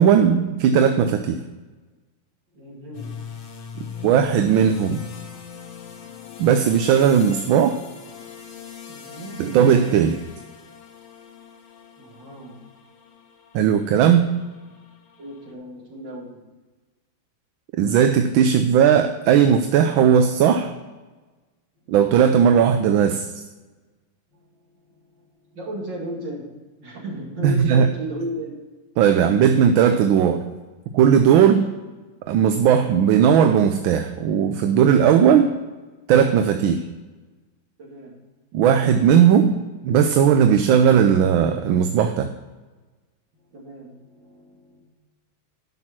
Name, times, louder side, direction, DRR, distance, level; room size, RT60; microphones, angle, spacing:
voice 1, 0.0-1.4 4.0-5.0 6.4-7.8 9.4-10.2 13.5-14.3 17.8-20.7 21.9-23.3 27.4-27.9 29.0-30.4 30.9-31.7 32.3-35.5 36.1-36.8 38.5-42.3, right 8 dB, 80° right, 7 dB, 1.4 m, -17 dB
voice 2, 2.5-3.1 8.9-9.4 12.0-12.6 15.2-16.4 21.9-22.0 24.3-26.5 26.8-28.5 36.6-36.9 37.8-38.2 43.3-44.8, right 1 dB, 60° right, -2 dB, 3.0 m, -35 dB
sound 1, 2.9-15.5, left 7 dB, 75° left, 2.0 m, -40 dB
10.5 x 6.2 x 6.0 m, 1.3 s
omnidirectional pair, 2.2 m